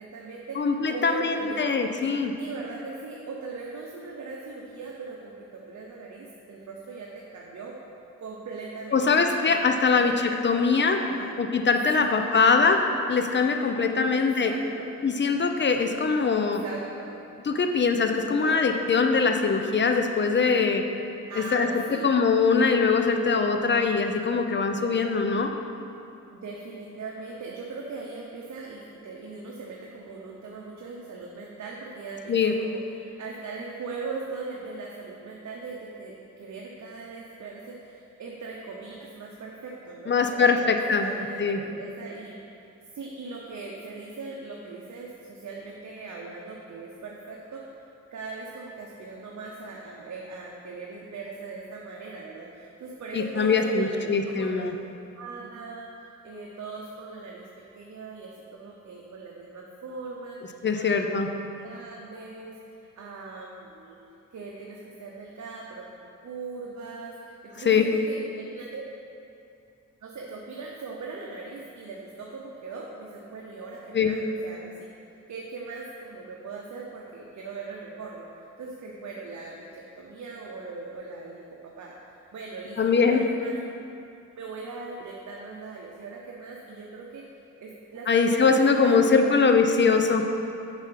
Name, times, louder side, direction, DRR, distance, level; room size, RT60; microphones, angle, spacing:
voice 1, 0.0-0.6 0.9-1.7 2.4-7.8 8.2-9.5 9.8-10.2 11.0-11.3 11.9-12.8 14.1-14.9 16.3-17.2 18.2-18.6 21.3-22.1 26.3-42.4 42.9-47.8 48.1-54.6 55.2-57.5 57.8-64.0 64.3-68.8 70.0-74.9 75.3-78.3 78.6-82.0 82.3-83.8 84.4-87.2 87.6-89.4, right 4 dB, 65° right, -2 dB, 0.9 m, -40 dB
voice 2, 0.6-2.3 8.9-11.0 11.4-14.5 15.0-16.6 17.5-20.8 21.4-25.5 32.3-32.5 40.1-41.1 41.4-41.6 53.1-54.7 60.6-61.3 67.6-67.9 73.9-74.1 82.8-83.2 88.1-90.3, left 5 dB, 35° left, 5 dB, 0.7 m, -22 dB
7.2 x 5.0 x 5.8 m, 2.6 s
cardioid pair, 85°, 31 cm